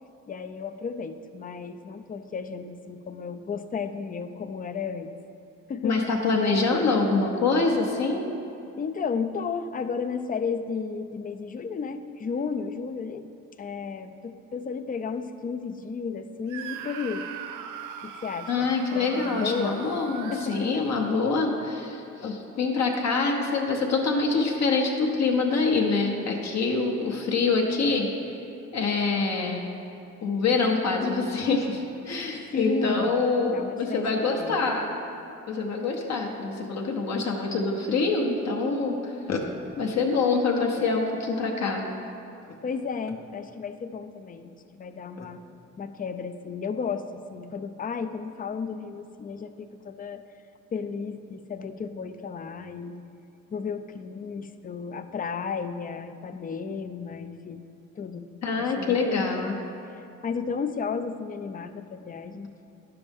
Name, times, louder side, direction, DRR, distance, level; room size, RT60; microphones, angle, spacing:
voice 1, 0.3-5.2 5.7-6.0 8.8-13.3 13.6-17.3 18.0-19.8 20.1-20.8 32.5-33.2 33.5-34.7 42.6-45.4 45.8-50.2 50.7-53.0 53.5-57.6 58.0-58.3 58.6-59.3 60.2-62.7, left 5 dB, 30° left, 10 dB, 0.4 m, -33 dB
voice 2, 5.8-8.2 18.5-28.1 28.7-29.7 30.2-34.9 35.5-39.4 39.8-41.8 45.2-45.3 58.4-59.5, left 4 dB, 60° left, 0 dB, 1.0 m, -25 dB
Screaming, 16.5-21.3, right 8 dB, 85° right, 0.5 m, -40 dB
9.7 x 6.9 x 3.5 m, 2.7 s
cardioid pair, 90°, 30 cm